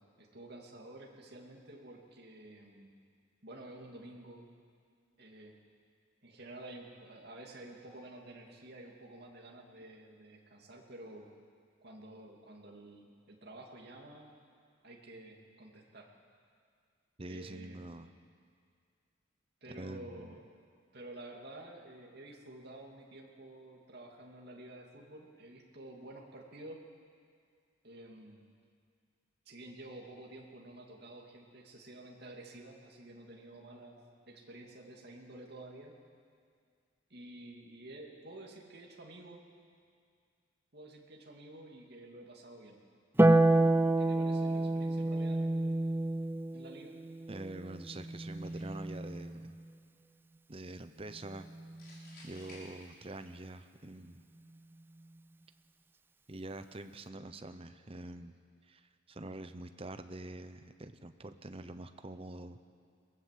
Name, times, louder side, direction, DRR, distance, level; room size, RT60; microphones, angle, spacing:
voice 1, 0.0-2.9 3.4-4.4 5.2-5.5 6.2-11.3 11.8-14.3 14.8-16.1 17.3-18.0 19.6-20.4 20.9-26.8 27.8-28.5 29.5-36.0 37.1-39.4 40.7-42.8 43.2-45.8 46.5-46.9, right 1 dB, 50° right, 0 dB, 2.6 m, -50 dB
voice 2, 17.2-18.1 19.7-20.4 47.3-49.6 50.5-51.5 52.2-54.2 56.3-58.3 58.7-62.6, right 2 dB, 30° right, 10 dB, 0.8 m, -45 dB
Harp, 43.2-49.7 51.3-52.3, right 2 dB, 10° right, 0.5 m, -29 dB
sound 1, 48.4-49.0 51.8-53.4, left 1 dB, 45° left, 6.4 m, -55 dB
22.5 x 18.0 x 7.7 m, 2.1 s
head